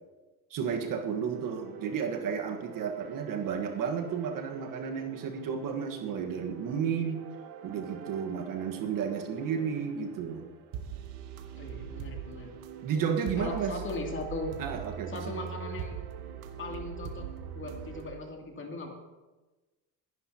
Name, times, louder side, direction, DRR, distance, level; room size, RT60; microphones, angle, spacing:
voice 1, 0.5-7.2 7.6-10.5 12.8-13.8 14.6-15.3, right 7 dB, 55° right, 4 dB, 1.5 m, -32 dB
sound 1, 0.6-18.1, right 8 dB, 70° right, 1.4 m, -43 dB
voice 2, 11.6-12.5 13.4-14.5 15.1-16.0 16.6-17.3 17.5-18.9, left 2 dB, 30° left, 1 dB, 2.7 m, -38 dB
22.0 x 11.0 x 2.9 m, 1.2 s
supercardioid pair, 100°, 39 cm